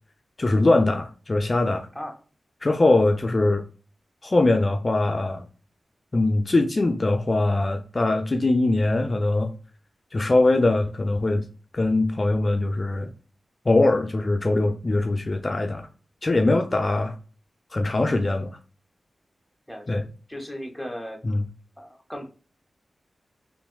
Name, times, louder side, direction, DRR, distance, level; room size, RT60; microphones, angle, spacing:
voice 1, 0.4-1.9 2.6-3.6 4.2-5.5 6.1-9.5 10.1-11.5 11.7-13.1 13.7-15.9 16.2-17.1 17.7-18.5 19.9-20.0 21.2-21.5, left 2 dB, 40° left, 5 dB, 0.4 m, -22 dB
voice 2, 19.7-20.0 20.3-21.2 21.8-22.3, equal, ahead, 3 dB, 0.9 m, -36 dB
3.3 x 2.5 x 2.2 m, 0.37 s
cardioid pair, 50°, 0 cm